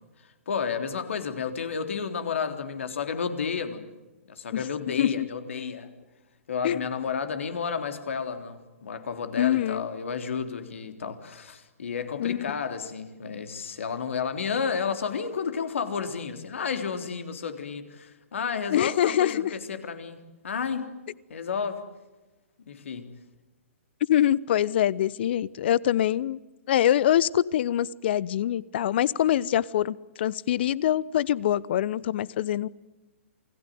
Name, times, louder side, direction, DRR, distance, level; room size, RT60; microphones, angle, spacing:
voice 1, 0.4-3.9 4.3-5.9 6.5-20.9 21.3-21.8 22.6-23.1, left 6 dB, 65° left, 8 dB, 3.5 m, -31 dB
voice 2, 9.4-9.8 12.2-12.5 18.7-19.4 24.1-26.4 26.7-32.7, left 11 dB, 50° left, 23 dB, 0.9 m, -24 dB
28.5 x 19.5 x 9.5 m, 1.1 s
figure-of-eight pair, 125°, 7 cm